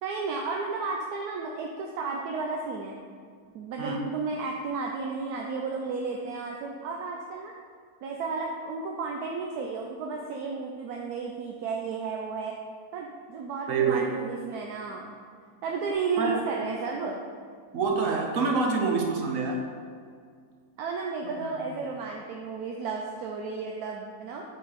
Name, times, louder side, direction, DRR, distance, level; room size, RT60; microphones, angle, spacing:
voice 1, 0.0-3.0 3.5-7.5 8.0-12.5 12.9-15.2 15.6-17.2 20.8-24.4, right 4 dB, 75° right, 0 dB, 1.1 m, -33 dB
voice 2, 13.7-14.1 16.2-16.4 17.7-19.6 21.2-21.5, right 4 dB, 60° right, 2 dB, 1.2 m, -26 dB
7.4 x 4.5 x 4.0 m, 2.1 s
omnidirectional pair, 1.7 m